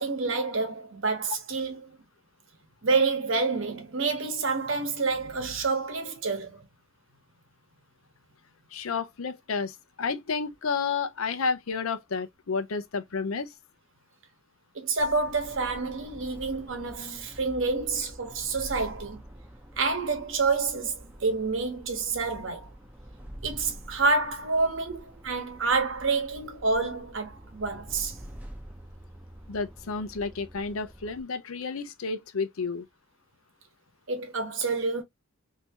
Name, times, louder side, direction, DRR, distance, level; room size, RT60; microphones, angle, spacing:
voice 1, 0.0-2.0 2.8-6.7 14.7-19.2 19.8-22.7 23.4-28.2 34.1-35.0, right 4 dB, 65° right, 1.0 m, -28 dB
voice 2, 8.7-13.5 29.5-32.9, left 5 dB, 75° left, 0.6 m, -31 dB
sound 1, 15.0-31.2, equal, 5° right, 0.6 m, -46 dB
3.3 x 2.8 x 2.8 m
head